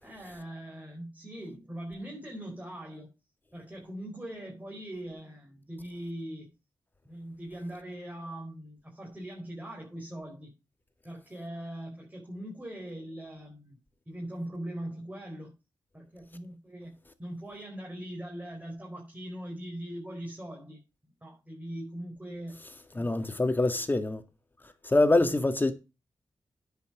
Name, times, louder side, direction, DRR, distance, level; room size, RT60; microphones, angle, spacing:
voice 1, 0.0-3.1 3.5-6.5 7.0-10.5 11.0-13.8 14.1-15.5 15.9-16.9 17.2-20.8 21.2-22.6 22.9-23.4, right 1 dB, 20° right, 4.5 m, -41 dB
voice 2, 22.9-24.2 24.8-25.7, left 2 dB, 25° left, 2.0 m, -25 dB
9.9 x 6.1 x 6.2 m
cardioid pair, 65°, 8 cm